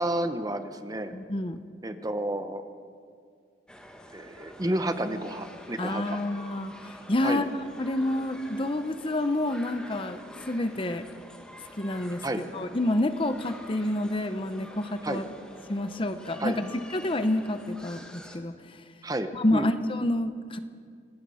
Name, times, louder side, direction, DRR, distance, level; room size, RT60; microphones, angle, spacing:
voice 1, 0.0-1.1 1.8-2.6 4.1-6.2 7.2-7.4 12.2-12.4 15.0-15.2 16.4-16.6 19.0-19.7, right 1 dB, 20° right, 8 dB, 1.1 m, -30 dB
voice 2, 1.1-1.6 5.8-10.2 10.5-11.0 11.8-12.2 12.5-15.2 15.7-18.8 19.3-20.6, left 1 dB, 30° left, 10 dB, 0.8 m, -28 dB
sound 1, 3.7-18.4, equal, 5° left, 1.9 m, -47 dB
26.5 x 18.5 x 5.7 m, 2.1 s
head